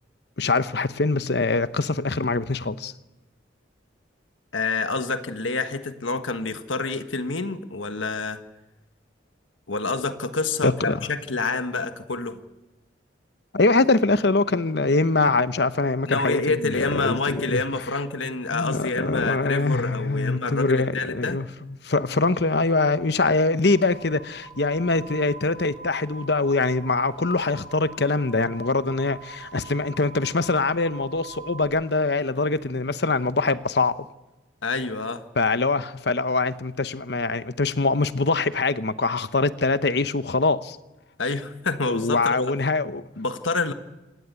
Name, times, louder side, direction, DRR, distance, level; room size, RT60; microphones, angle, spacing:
voice 1, 0.4-2.9 10.6-11.1 13.5-17.6 18.5-34.0 35.4-40.8 41.9-43.0, left 3 dB, 60° left, 0.9 m, -23 dB
voice 2, 4.5-8.4 9.7-12.4 16.1-21.4 34.6-35.2 41.2-42.5 43.2-43.7, left 3 dB, 85° left, 1.5 m, -27 dB
sound 1, 23.6-31.6, right 3 dB, 75° right, 7.1 m, -44 dB
27.5 x 18.5 x 8.3 m
head